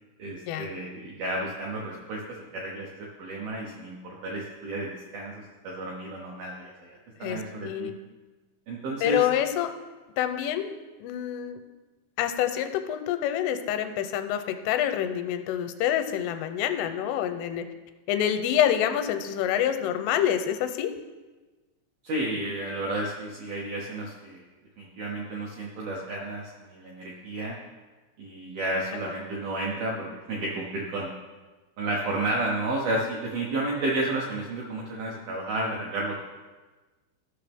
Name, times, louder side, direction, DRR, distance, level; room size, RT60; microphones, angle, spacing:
voice 1, 0.2-2.2 2.5-7.9 8.7-9.3 22.0-24.4 24.8-27.6 28.2-31.1 31.8-36.2, right 2 dB, 80° right, -3 dB, 2.1 m, -32 dB
voice 2, 7.2-8.0 9.0-9.7 10.2-11.6 12.2-17.6 18.1-20.9, left 10 dB, 85° left, 8 dB, 3.1 m, -27 dB
15.0 x 6.3 x 3.5 m, 1.3 s
omnidirectional pair, 5.6 m